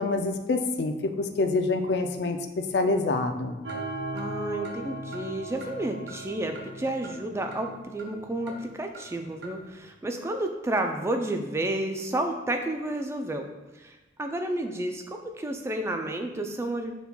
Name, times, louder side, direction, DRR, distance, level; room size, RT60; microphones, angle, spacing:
voice 1, 0.0-3.6, left 3 dB, 60° left, 6 dB, 0.4 m, -26 dB
sound 1, 3.6-9.7, right 1 dB, 75° right, 0.7 m, -39 dB
voice 2, 4.1-13.5 13.7-16.9, right 1 dB, 15° right, 4 dB, 0.3 m, -31 dB
5.4 x 4.5 x 2.2 m, 1.1 s
head